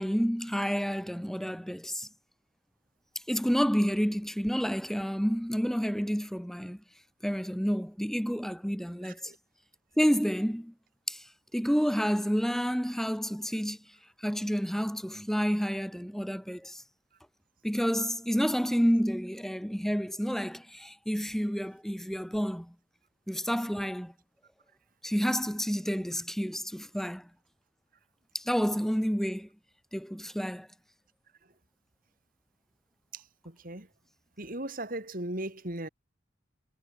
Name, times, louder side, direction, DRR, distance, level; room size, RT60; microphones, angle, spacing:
voice 1, 0.0-2.1 3.3-6.8 7.2-9.3 10.0-10.7 11.1-11.3 11.5-13.8 14.2-16.8 17.6-22.7 23.3-24.1 25.0-27.3 28.3-29.5 29.9-30.7, equal, ahead, 4.3 m, -29 dB
voice 2, 9.0-9.4 33.1-33.9 34.4-35.9, right 1 dB, 45° right, 4.0 m, -38 dB
head